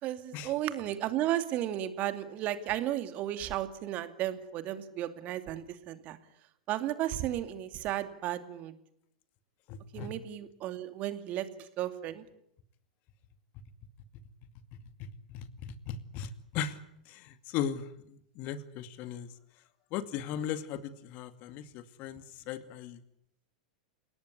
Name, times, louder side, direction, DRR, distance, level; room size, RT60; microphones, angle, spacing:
voice 1, 0.0-6.2 6.7-8.7 9.9-12.2, right 12 dB, 40° right, 10 dB, 2.5 m, -34 dB
voice 2, 9.7-10.1 15.0-16.8 17.1-19.3 19.9-23.0, left 8 dB, 45° left, 11 dB, 2.3 m, -38 dB
29.5 x 18.5 x 9.8 m, 0.77 s
figure-of-eight pair, 95°, 4 cm